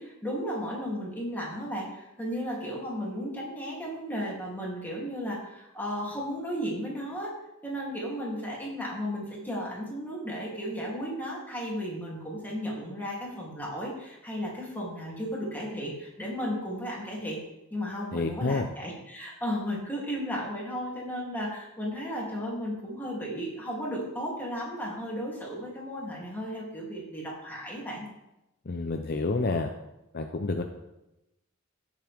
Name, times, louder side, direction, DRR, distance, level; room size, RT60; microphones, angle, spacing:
voice 1, 0.0-7.3 7.6-17.4 17.7-28.1, equal, 10° left, -4 dB, 3.1 m, -34 dB
voice 2, 18.1-18.7 28.7-29.7 30.1-30.6, left 3 dB, 45° left, 4 dB, 0.7 m, -29 dB
16.0 x 7.3 x 3.6 m, 0.93 s
head